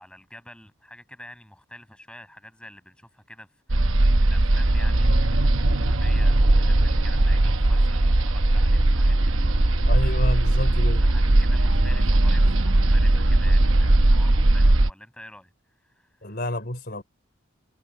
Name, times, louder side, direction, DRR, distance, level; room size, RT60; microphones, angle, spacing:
voice 1, 0.0-10.2 10.5-15.5 15.8-16.4, left 1 dB, 5° left, 6.5 m, -47 dB
sound 1, 3.7-14.9, right 1 dB, 75° right, 1.1 m, -19 dB
voice 2, 9.9-11.1 16.2-17.0, left 1 dB, 50° left, 4.0 m, -29 dB
head